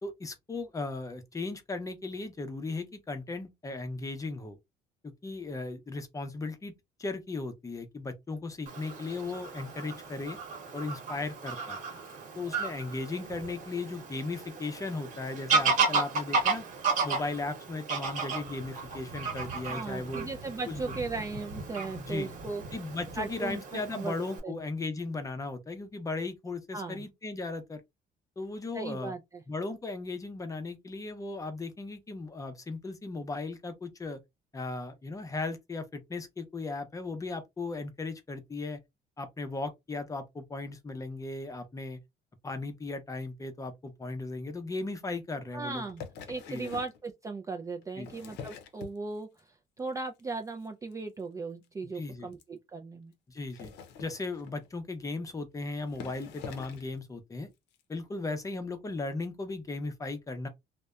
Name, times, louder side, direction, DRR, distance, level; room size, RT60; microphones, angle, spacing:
voice 1, 0.0-4.6 5.0-6.7 7.0-10.4 10.7-11.8 12.3-16.7 17.0-20.3 20.7-20.9 22.0-22.3 22.7-27.8 28.4-29.1 29.5-34.2 34.5-38.8 39.2-42.0 42.4-45.8 46.5-46.7 48.0-48.1 51.9-52.3 53.3-53.7 54.0-57.5 57.9-60.5, left 3 dB, 20° left, 0.6 m, -37 dB
Fowl / Bird vocalization bird call bird song, 8.7-24.4, right 4 dB, 50° right, 1.1 m, -34 dB
voice 2, 19.7-22.6 23.2-24.1 24.4-24.6 26.7-27.1 28.7-29.4 45.5-46.0 46.3-49.3 49.8-53.1, right 3 dB, 20° right, 0.3 m, -37 dB
sound 1, 45.9-47.0 47.8-49.4 49.8-50.2 50.5-50.7 50.9-51.0 51.2-51.3 51.6-51.7 52.3-52.4 53.4-54.7 55.4-55.5 55.9-57.0 57.7-57.8, left 6 dB, 80° left, 0.6 m, -45 dB
2.7 x 2.1 x 2.3 m
cardioid pair, 110°, 17 cm